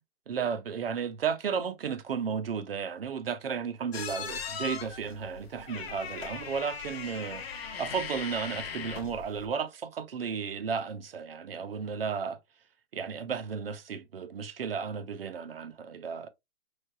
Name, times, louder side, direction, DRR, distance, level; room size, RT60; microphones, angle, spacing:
voice 1, 0.3-7.4 7.8-12.4 12.9-16.3, right 6 dB, 45° right, 0.5 m, -34 dB
sound 1, 3.9-9.5, left 6 dB, 45° left, 0.7 m, -39 dB
4.7 x 3.1 x 2.2 m
hypercardioid pair, 165°, 42 cm